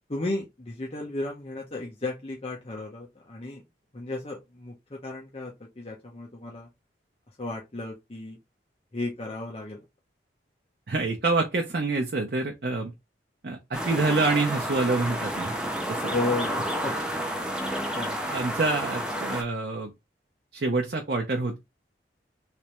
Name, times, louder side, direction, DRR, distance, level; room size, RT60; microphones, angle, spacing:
voice 1, 0.1-3.6 3.9-6.7 7.4-8.4 8.9-9.9 16.1-17.3 17.9-18.2, left 2 dB, 35° left, 0.8 m, -34 dB
voice 2, 10.9-12.9 13.4-15.5 15.9-16.1 18.2-19.9 20.5-21.6, right 3 dB, 60° right, 0.7 m, -27 dB
sound 1, 13.7-19.4, equal, 5° right, 0.6 m, -30 dB
3.4 x 3.2 x 3.0 m
head